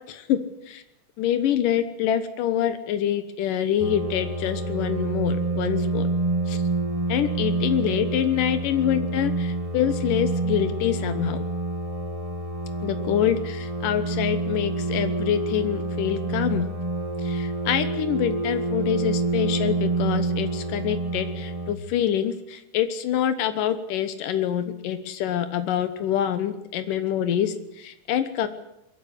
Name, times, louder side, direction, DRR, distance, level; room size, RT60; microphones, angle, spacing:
voice 1, 0.1-0.4 0.7-0.8 1.2-6.1 6.5-6.6 7.1-11.4 12.8-16.7 17.2-28.5, left 10 dB, 90° left, 10 dB, 2.8 m, -26 dB
sound 1, 3.8-21.7, right 2 dB, 65° right, 0.3 m, -27 dB
22.5 x 14.5 x 9.8 m, 0.85 s
omnidirectional pair, 3.7 m